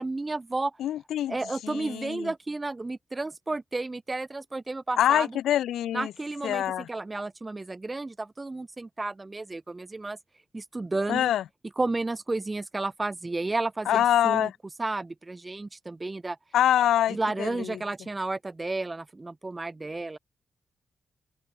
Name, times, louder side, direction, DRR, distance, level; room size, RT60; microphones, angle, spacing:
voice 1, 0.0-0.8 1.3-5.4 5.9-10.2 10.5-11.3 11.8-14.5 14.8-16.4 17.1-20.2, right 2 dB, 30° right, 5.3 m, -32 dB
voice 2, 0.8-1.4 1.6-2.3 5.0-6.1 6.4-6.9 11.1-11.4 13.9-14.5 16.5-17.5, left 11 dB, 85° left, 4.0 m, -24 dB
open air
supercardioid pair, 45°, 0 cm